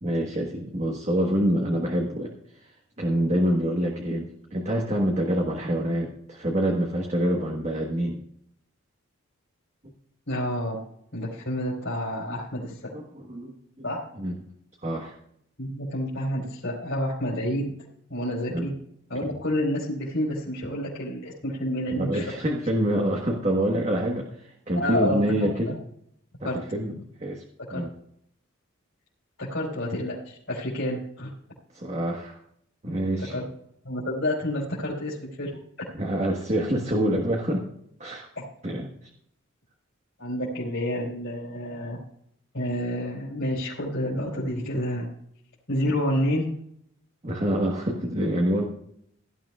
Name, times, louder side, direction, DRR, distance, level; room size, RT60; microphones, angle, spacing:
voice 1, 0.0-2.7 3.0-8.2 12.3-12.4 12.9-13.9 14.2-14.4 14.8-15.1 18.5-18.7 22.0-25.8 26.5-26.9 27.2-27.4 27.7-27.9 31.7-32.4 32.8-33.3 35.9-37.7 38.0-38.3 38.6-38.9 47.2-48.6, right 1 dB, 35° right, 0 dB, 1.3 m, -26 dB
voice 2, 10.3-10.8 11.1-12.9 13.8-14.0 15.6-17.7 18.1-18.7 19.1-22.2 24.8-25.2 26.4-26.6 27.7-27.8 29.4-31.3 33.3-33.4 33.8-35.5 38.4-38.5 40.2-42.0 42.5-45.1 45.7-46.5, equal, 65° left, -6 dB, 4.1 m, -29 dB
17.0 x 12.0 x 2.4 m, 0.71 s
head